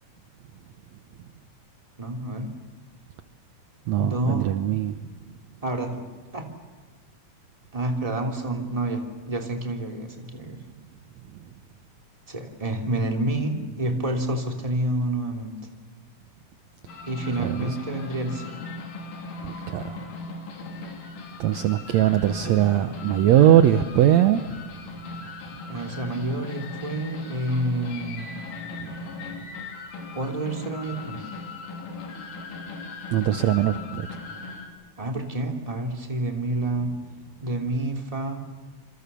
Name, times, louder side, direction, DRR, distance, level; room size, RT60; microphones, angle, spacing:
voice 1, 2.0-2.5 4.0-4.5 5.6-6.0 6.3-6.5 7.7-10.6 12.3-15.5 17.1-18.6 25.7-28.3 30.1-31.2 35.0-36.9 37.4-38.4, right 1 dB, 10° right, 3 dB, 2.8 m, -28 dB
voice 2, 3.9-4.9 17.4-17.6 19.4-20.0 21.4-24.6 28.8-28.9 33.1-34.1, right 11 dB, 70° right, 10 dB, 1.9 m, -20 dB
sound 1, 16.9-34.7, left 3 dB, 80° left, 4.6 m, -38 dB
28.0 x 26.0 x 6.9 m, 1.4 s
omnidirectional pair, 3.7 m